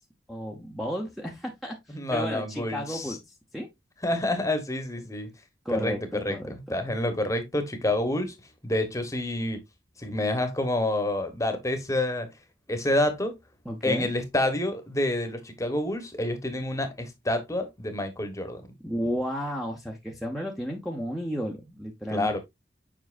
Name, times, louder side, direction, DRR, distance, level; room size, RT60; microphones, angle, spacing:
voice 1, 0.3-3.2 3.5-3.7 5.6-6.8 13.6-14.1 18.8-22.3, equal, ahead, 0.8 m, -33 dB
voice 2, 1.9-3.2 4.0-5.3 5.7-6.0 6.2-8.4 8.6-9.6 10.0-12.3 12.7-13.4 13.8-18.6 22.1-22.4, left 1 dB, 15° left, 1.1 m, -28 dB
7.3 x 5.3 x 2.5 m
head